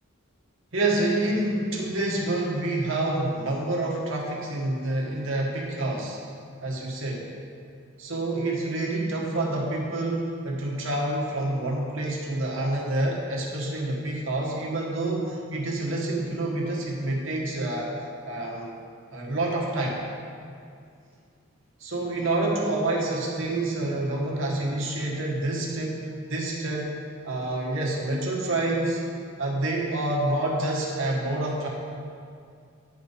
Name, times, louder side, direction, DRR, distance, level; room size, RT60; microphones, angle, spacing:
voice 1, 0.7-6.2 6.6-7.2 8.0-17.9 18.2-18.7 19.1-20.0 21.8-26.9 27.2-29.0 29.4-31.7, right 2 dB, 70° right, -2 dB, 1.5 m, -27 dB
10.0 x 4.0 x 5.5 m, 2.3 s
head